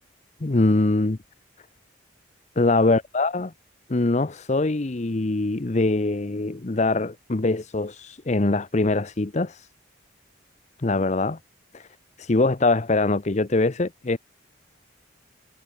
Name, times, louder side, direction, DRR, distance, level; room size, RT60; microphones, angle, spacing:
voice 1, 0.4-1.2 2.6-3.5 3.9-9.7 10.8-11.4 11.7-11.9 12.2-14.2, left 2 dB, 35° left, 0.7 m, -23 dB
head